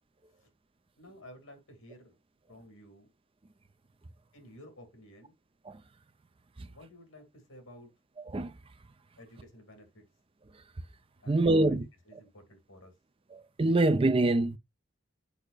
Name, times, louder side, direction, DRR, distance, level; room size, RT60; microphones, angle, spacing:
voice 1, 1.0-2.2 2.5-3.1 4.3-5.3 6.6-7.9 9.2-10.1 11.2-11.8 12.1-12.9, left 1 dB, 75° left, 2.4 m, -53 dB
voice 2, 8.3-8.7 10.5-10.6 11.3-11.9 12.1-12.2 13.3-14.6, right 2 dB, 25° right, 0.5 m, -26 dB
8.3 x 4.9 x 2.4 m
head